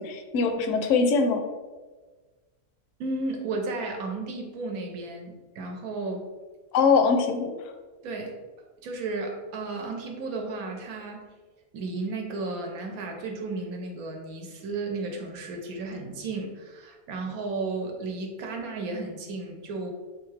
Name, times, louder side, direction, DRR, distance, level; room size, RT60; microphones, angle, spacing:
voice 1, 0.0-1.4 6.7-7.5, left 5 dB, 70° left, 6 dB, 0.8 m, -22 dB
voice 2, 3.0-6.3 8.0-8.3 8.8-11.3 11.7-19.9, right 3 dB, 80° right, 2 dB, 1.1 m, -33 dB
3.5 x 3.5 x 3.2 m, 1.3 s
omnidirectional pair, 1.5 m